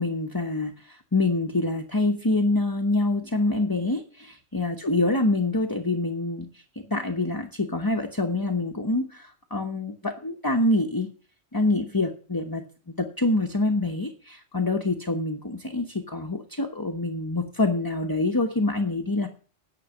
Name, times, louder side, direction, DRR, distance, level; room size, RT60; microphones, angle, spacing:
voice 1, 0.0-6.5 6.9-11.1 11.5-19.3, left 2 dB, 20° left, 4 dB, 1.0 m, -26 dB
10.0 x 6.2 x 7.1 m, 0.39 s
omnidirectional pair, 1.2 m